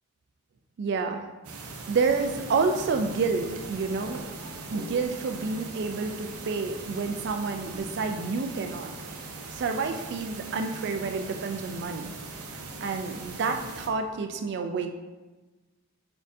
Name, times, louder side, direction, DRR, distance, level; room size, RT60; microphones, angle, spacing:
voice 1, 0.8-1.2 1.9-4.2 4.7-8.9 9.5-12.1 12.8-14.9, right 4 dB, 50° right, 6 dB, 0.3 m, -29 dB
sound 1, 1.4-13.9, right 3 dB, 85° right, 0.6 m, -40 dB
4.7 x 4.4 x 2.6 m, 1.2 s
head